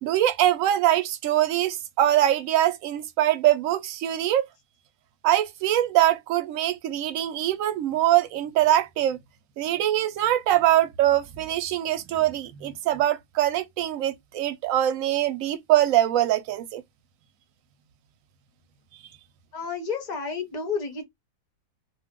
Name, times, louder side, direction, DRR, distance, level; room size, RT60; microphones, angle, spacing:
voice 1, 0.0-4.5 5.2-9.2 9.6-16.8, right 13 dB, 70° right, 0.9 m, -23 dB
voice 2, 19.5-21.0, left 5 dB, 40° left, 0.6 m, -31 dB
2.5 x 2.3 x 3.5 m
omnidirectional pair, 1.6 m